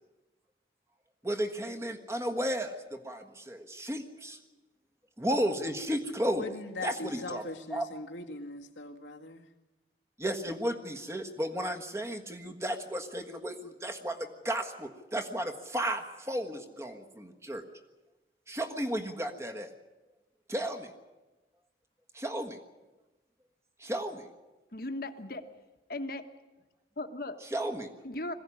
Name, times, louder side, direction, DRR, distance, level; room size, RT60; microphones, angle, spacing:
voice 1, 1.2-4.4 5.2-6.4 6.8-7.4 7.7-7.9 10.2-17.6 18.5-19.7 20.5-20.9 22.1-22.6 23.8-24.3 27.4-27.9, equal, 15° right, 4 dB, 1.4 m, -33 dB
voice 2, 6.4-9.5, left 2 dB, 90° left, 4 dB, 1.9 m, -40 dB
voice 3, 24.7-25.5 25.9-26.3 27.0-27.4 28.0-28.3, left 2 dB, 50° left, 7 dB, 1.4 m, -37 dB
21.5 x 16.0 x 9.9 m, 1.1 s
head